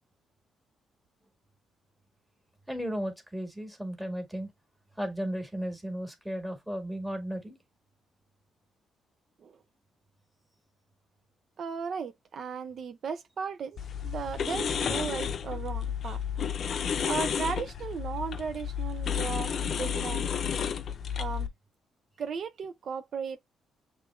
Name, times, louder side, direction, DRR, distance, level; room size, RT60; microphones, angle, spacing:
voice 1, 2.7-4.5 5.0-7.6, equal, 5° right, 1.7 m, -35 dB
voice 2, 11.6-16.2 16.6-16.7 17.0-20.3 21.2-21.5 22.2-23.4, right 6 dB, 55° right, 0.5 m, -36 dB
sound 1, 13.8-21.5, left 7 dB, 55° left, 0.5 m, -32 dB
6.5 x 3.1 x 2.4 m
cardioid pair, 90°, 0 cm